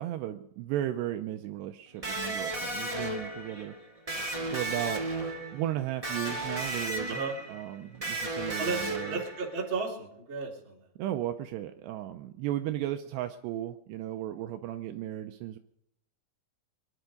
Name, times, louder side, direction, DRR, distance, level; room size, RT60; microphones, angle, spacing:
voice 1, 0.0-3.8 4.5-5.0 5.5-7.2 7.5-9.2 11.0-15.6, right 13 dB, 80° right, 7 dB, 2.7 m, -35 dB
Electric guitar, 2.0-9.7, right 2 dB, 55° right, 0.4 m, -35 dB
voice 2, 8.6-10.9, right 4 dB, 30° right, -3 dB, 3.9 m, -34 dB
25.5 x 11.0 x 5.2 m, 0.80 s
omnidirectional pair, 5.2 m